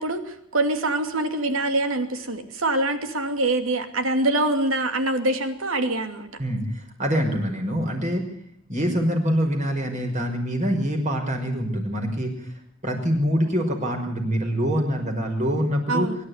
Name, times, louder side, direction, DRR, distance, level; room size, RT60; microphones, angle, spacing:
voice 1, 0.0-6.3 15.9-16.2, right 2 dB, 75° right, 7 dB, 2.7 m, -24 dB
voice 2, 6.4-8.2 8.7-12.3 12.8-16.1, equal, 35° right, 3 dB, 5.9 m, -25 dB
23.5 x 11.5 x 9.7 m, 0.72 s
head